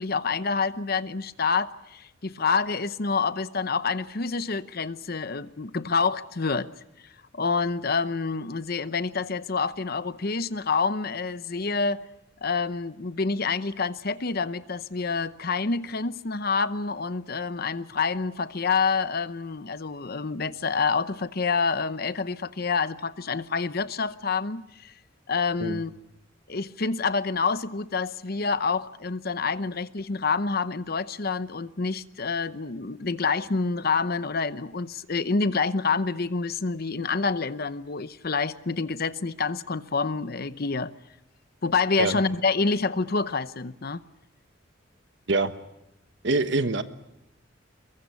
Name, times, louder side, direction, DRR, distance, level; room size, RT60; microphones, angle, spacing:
voice 1, 0.0-6.7 7.3-12.0 12.4-24.9 25.3-25.9 26.5-40.9 41.6-44.0, left 4 dB, 50° left, 0.8 m, -27 dB
voice 2, 46.2-46.8, right 3 dB, 60° right, 1.4 m, -24 dB
23.0 x 22.5 x 8.3 m
head